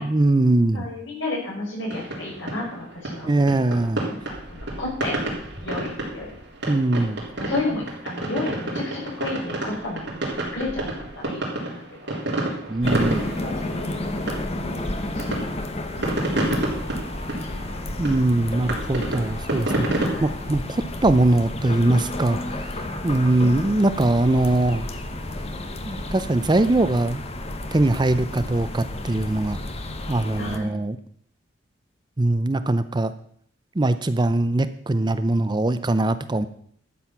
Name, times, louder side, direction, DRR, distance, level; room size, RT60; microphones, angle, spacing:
voice 1, 0.0-0.9 3.2-4.0 6.7-7.2 12.7-13.2 18.0-24.9 25.8-27.2 27.7-29.6 30.1-31.0 32.2-33.1 33.7-36.5, right 2 dB, 25° right, 12 dB, 0.5 m, -21 dB
voice 2, 0.7-3.5 4.0-5.2 5.6-6.3 7.4-12.2 13.4-14.1 14.5-16.3 17.3-18.2 20.1-20.3 30.4-30.8, left 2 dB, 75° left, -3 dB, 5.9 m, -33 dB
sound 1, 1.9-20.1, right 1 dB, 60° right, 3.6 m, -29 dB
sound 2, 12.8-30.6, left 1 dB, 30° left, 1.0 m, -32 dB
12.5 x 7.9 x 5.8 m, 0.63 s
head